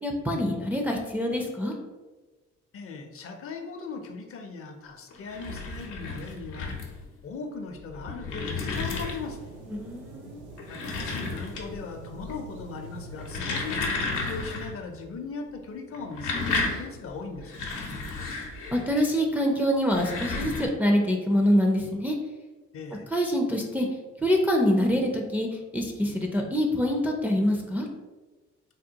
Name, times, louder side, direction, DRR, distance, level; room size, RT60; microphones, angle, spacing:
voice 1, 0.0-1.8 9.7-10.5 18.0-18.3 18.7-22.2 23.1-23.9 24.2-27.9, equal, 5° right, 0 dB, 0.4 m, -25 dB
voice 2, 2.7-6.7 7.2-9.4 10.7-17.5 22.7-23.1, left 4 dB, 50° left, 4 dB, 0.5 m, -39 dB
sound 1, 5.1-7.1 7.8-9.5 10.5-11.9 12.2-12.6 13.1-14.8 15.0-15.1 15.9-19.0 19.8-20.7, left 3 dB, 85° left, 0.7 m, -33 dB
sound 2, 9.2-14.6, right 1 dB, 80° right, 0.6 m, -44 dB
3.5 x 2.2 x 2.8 m, 1.2 s
cardioid pair, 90°, 30 cm